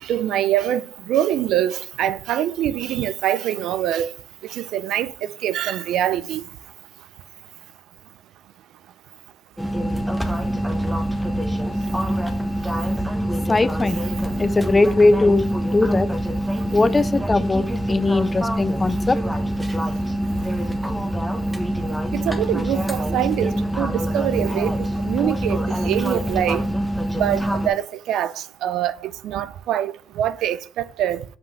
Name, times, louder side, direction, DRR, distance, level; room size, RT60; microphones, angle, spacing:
voice 1, 0.0-4.1 4.5-5.1 5.4-6.5 22.1-25.6 25.8-26.6 27.1-31.2, right 11 dB, 80° right, 0.4 m, -24 dB
sound 1, 9.6-27.7, right 1 dB, 5° right, 1.1 m, -25 dB
voice 2, 13.5-14.0 14.4-16.1 16.7-19.2, left 3 dB, 25° left, 0.5 m, -20 dB
7.7 x 5.5 x 3.2 m
cardioid pair, 90°, 0 cm